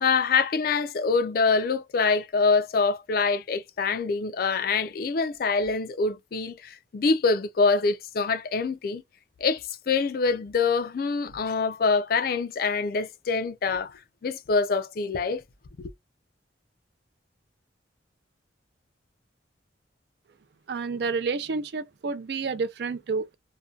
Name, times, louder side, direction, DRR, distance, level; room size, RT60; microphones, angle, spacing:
voice 1, 0.0-9.0 9.4-15.4 15.8-15.9, left 4 dB, 50° left, 0.3 m, -25 dB
voice 2, 20.7-23.4, right 4 dB, 55° right, 0.4 m, -29 dB
2.6 x 2.2 x 2.3 m
head